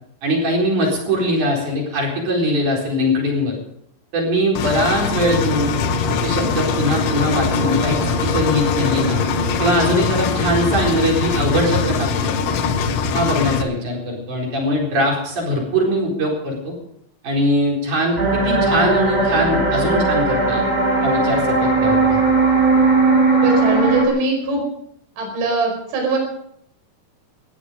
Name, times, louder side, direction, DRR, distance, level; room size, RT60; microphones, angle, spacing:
voice 1, 0.2-3.6 4.1-5.7 6.1-9.3 9.6-12.7 13.1-16.7 17.2-20.6 21.0-22.2, equal, 45° right, -1 dB, 5.3 m, -21 dB
Engine, 4.6-13.6, left 7 dB, 85° left, 3.3 m, -23 dB
sound 1, 5.1-13.6, left 1 dB, 45° left, 8.5 m, -26 dB
sound 2, 18.2-24.1, right 3 dB, 15° right, 3.5 m, -17 dB
voice 2, 23.3-24.6 25.2-26.2, right 2 dB, 80° right, 1 dB, 7.4 m, -21 dB
19.5 x 13.5 x 5.1 m, 0.73 s
omnidirectional pair, 5.5 m